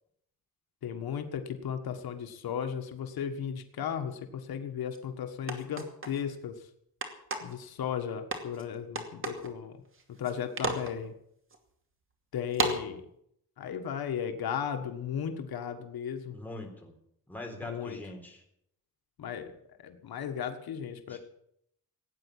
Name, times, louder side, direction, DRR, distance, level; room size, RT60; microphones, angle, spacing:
voice 1, 0.8-6.7 7.4-9.8 10.2-11.1 12.3-13.0 13.6-16.3 17.6-18.0 19.2-19.5 19.8-21.2, left 8 dB, 80° left, 7 dB, 1.6 m, -35 dB
sound 1, 4.9-5.0 5.5-6.2 7.0-7.6 8.3-8.6 8.9-9.5 9.9-10.3 10.6-10.9 11.5-11.6 12.5-12.8, right 3 dB, 35° right, 2.5 m, -32 dB
voice 2, 16.3-16.9 17.3-18.4 21.1-21.2, left 2 dB, 5° left, 1 dB, 3.9 m, -42 dB
17.0 x 9.4 x 8.6 m, 0.73 s
wide cardioid pair, 140°, 36 cm